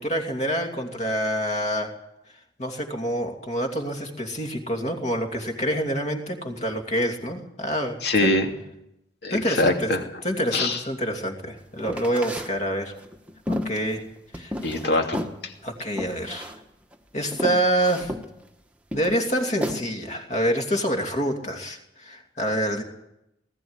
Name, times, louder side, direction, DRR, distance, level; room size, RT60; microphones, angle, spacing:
voice 1, 0.0-1.9 2.6-8.3 9.3-9.9 10.2-12.9 13.5-14.0 14.3-14.5 14.9-15.0 15.6-16.5 17.1-18.1 18.9-22.8, equal, 35° left, 3 dB, 2.8 m, -27 dB
voice 2, 8.0-8.5 9.2-10.0 10.5-10.8 14.6-15.5, left 2 dB, 60° left, 4 dB, 2.7 m, -23 dB
sound 1, 11.8-12.5 13.0-14.9 15.1-15.4 15.9-16.6 16.9-17.0 17.3-18.3 18.9-19.8, left 1 dB, 5° right, 1.3 m, -31 dB
20.0 x 14.5 x 9.8 m, 0.85 s
head